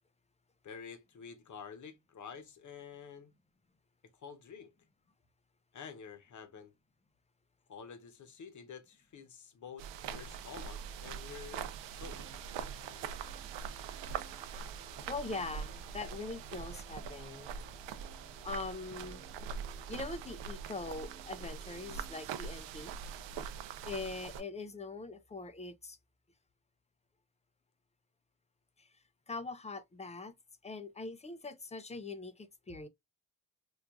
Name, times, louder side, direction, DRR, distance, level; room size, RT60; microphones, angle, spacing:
voice 1, 0.6-3.3 4.2-4.7 5.7-6.7 7.7-12.3, left 6 dB, 45° left, 0.8 m, -49 dB
sound 1, 9.8-24.4, right 7 dB, 80° right, 0.6 m, -43 dB
sound 2, 12.0-26.0, right 1 dB, 10° right, 0.8 m, -59 dB
voice 2, 14.5-17.5 17.9-18.0 18.4-19.2 19.9-22.9 23.8-26.0 28.8-30.3 30.6-32.9, left 3 dB, 15° left, 0.3 m, -42 dB
4.6 x 2.3 x 2.4 m
cardioid pair, 105°, 43 cm